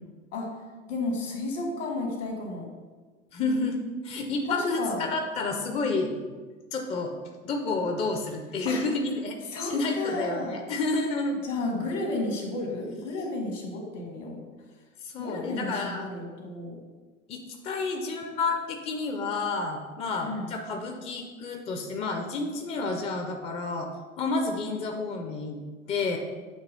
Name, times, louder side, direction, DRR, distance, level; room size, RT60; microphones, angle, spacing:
voice 1, 0.9-2.7 4.5-5.0 8.7-8.8 9.5-10.6 11.4-14.4 15.2-16.8 20.2-20.5, left 2 dB, 65° left, 1 dB, 1.7 m, -32 dB
voice 2, 3.3-6.4 6.7-7.1 7.4-11.4 15.0-16.1 17.3-23.9 24.2-25.6 25.9-26.2, left 3 dB, 15° left, 4 dB, 0.5 m, -30 dB
7.5 x 2.9 x 5.2 m, 1.4 s
figure-of-eight pair, 80°, 39 cm